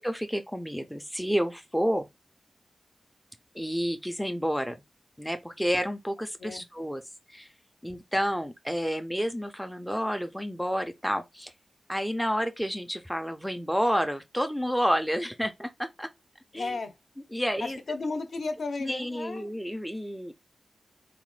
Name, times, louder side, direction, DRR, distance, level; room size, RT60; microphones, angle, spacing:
voice 1, 0.0-2.1 3.5-4.8 5.2-7.0 7.3-7.5 7.8-11.5 11.9-16.1 16.5-16.8 17.3-17.8 18.8-20.3, equal, ahead, 0.3 m, -30 dB
voice 2, 16.5-17.0 17.6-19.5, left 3 dB, 65° left, 0.6 m, -34 dB
3.9 x 2.1 x 3.1 m
wide cardioid pair, 170°, 0 cm